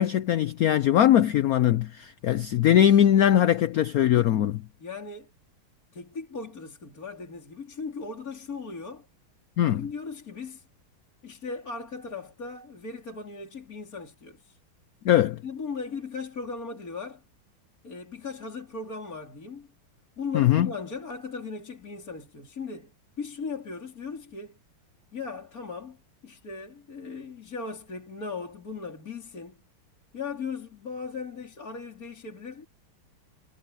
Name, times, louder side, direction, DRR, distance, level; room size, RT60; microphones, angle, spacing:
voice 1, 0.0-4.6 9.6-9.8 15.0-15.4 20.3-20.7, left 11 dB, 90° left, 0.7 m, -21 dB
voice 2, 4.8-5.3 5.9-9.1 9.8-10.6 11.2-14.6 15.4-17.2 17.8-19.7 20.2-24.6 25.1-29.6 30.1-32.7, left 4 dB, 40° left, 3.8 m, -38 dB
omnidirectional pair, 2.3 m